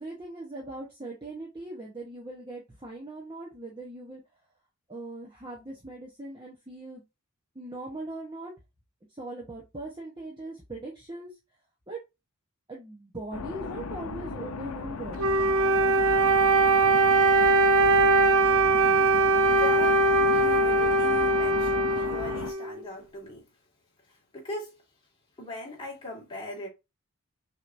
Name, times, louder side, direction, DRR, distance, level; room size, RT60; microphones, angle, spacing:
voice 1, 0.0-4.2 4.9-7.0 7.5-8.5 9.1-11.3 11.9-12.0 12.7-15.2, right 2 dB, 20° right, 1.0 m, -40 dB
sound 1, 13.3-22.5, left 4 dB, 80° left, 0.6 m, -37 dB
Wind instrument woodwind instrument, 15.2-22.7, right 3 dB, 65° right, 0.6 m, -21 dB
voice 2, 19.5-20.0 20.3-23.4 24.3-24.7 25.4-26.7, left 2 dB, 20° left, 2.1 m, -39 dB
6.4 x 3.0 x 2.7 m
head